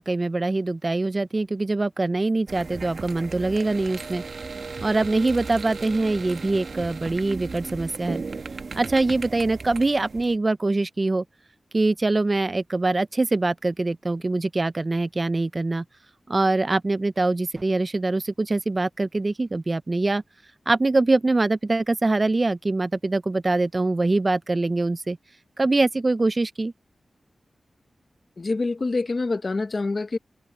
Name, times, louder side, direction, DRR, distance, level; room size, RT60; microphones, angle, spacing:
voice 1, 0.0-4.2 4.8-8.2 8.7-11.2 11.7-15.8 16.3-20.2 20.7-25.2 25.6-26.7, right 2 dB, 30° right, 0.3 m, -23 dB
sound 1, 2.5-10.4, right 4 dB, 60° right, 1.2 m, -36 dB
voice 2, 28.4-30.2, left 3 dB, 40° left, 0.9 m, -26 dB
wide cardioid pair, 130°, 0 cm